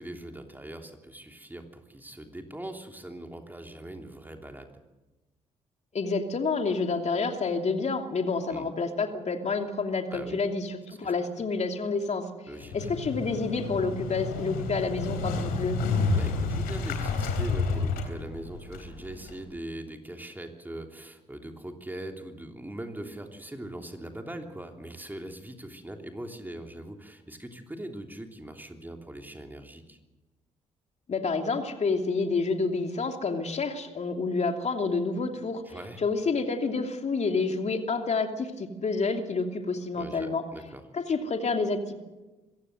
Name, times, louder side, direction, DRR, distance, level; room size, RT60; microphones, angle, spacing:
voice 1, 0.0-4.8 8.5-8.7 10.1-10.4 10.9-11.1 12.5-12.9 16.1-30.0 35.6-36.0 39.9-40.8, right 1 dB, 10° right, 4 dB, 3.1 m, -41 dB
voice 2, 5.9-12.3 12.7-15.8 31.1-35.6 36.0-40.4 40.9-41.9, left 4 dB, 45° left, 4 dB, 2.7 m, -29 dB
Motorcycle, 12.6-19.4, left 4 dB, 75° left, 3.4 m, -30 dB
25.5 x 15.5 x 7.9 m, 1.1 s
hypercardioid pair, 45°, 16 cm